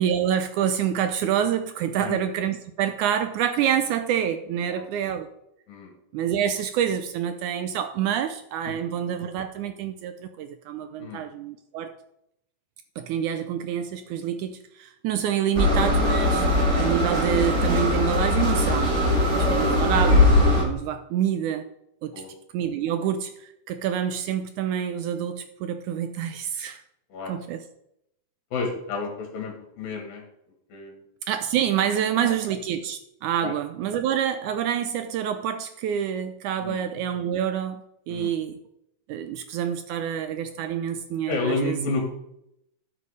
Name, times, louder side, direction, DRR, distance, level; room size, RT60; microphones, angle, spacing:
voice 1, 0.0-5.3 6.1-11.9 13.0-16.5 16.7-21.6 22.0-22.1 22.5-26.8 27.3-27.6 31.3-37.8 38.1-38.6 39.1-41.8, right 9 dB, 80° right, 9 dB, 1.8 m, -27 dB
sound 1, 15.6-20.6, left 1 dB, 25° right, 1.7 m, -20 dB
voice 2, 19.2-19.5 22.1-22.3 27.1-27.4 28.5-30.2 30.7-31.0 32.0-32.4 33.4-33.6 36.6-36.8 38.1-38.3 41.3-42.1, left 3 dB, 75° left, 2 dB, 3.4 m, -31 dB
12.0 x 7.0 x 4.8 m, 0.79 s
omnidirectional pair, 4.1 m